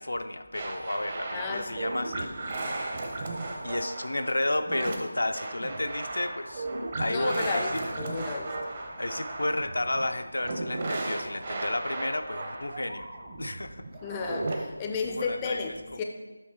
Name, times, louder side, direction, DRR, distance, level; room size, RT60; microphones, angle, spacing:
voice 1, 0.0-2.3 3.6-6.7 7.0-7.9 8.2-8.4 9.0-13.1 13.4-13.8 15.0-15.6 15.9-16.0, left 1 dB, 80° left, 8 dB, 0.4 m, -32 dB
sound 1, 0.5-14.6, right 2 dB, 40° right, 0.8 m, -35 dB
sound 2, 0.7-12.9, left 1 dB, 70° right, 1.7 m, -52 dB
voice 2, 1.3-1.8 7.1-8.6 14.0-16.0, left 4 dB, 15° left, 4 dB, 0.4 m, -33 dB
7.7 x 3.1 x 4.4 m, 1.2 s
figure-of-eight pair, 165°, 0 cm